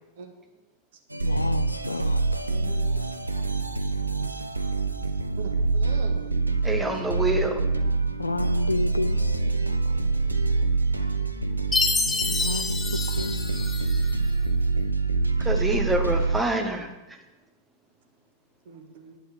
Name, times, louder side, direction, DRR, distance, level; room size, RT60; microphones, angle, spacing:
sound 1, 1.1-16.4, right 3 dB, 85° right, 0.8 m, -26 dB
voice 1, 1.2-2.4 8.2-9.9 12.2-13.4, left 3 dB, 80° left, 0.5 m, -31 dB
voice 2, 2.5-2.9 5.4-6.2 18.7-19.2, right 6 dB, 55° right, 1.8 m, -42 dB
voice 3, 6.6-7.6 15.4-17.2, right 2 dB, 10° right, 1.6 m, -26 dB
Chime, 11.7-14.2, left 4 dB, 15° left, 1.0 m, -27 dB
9.6 x 7.8 x 7.1 m
figure-of-eight pair, 90°, 0 cm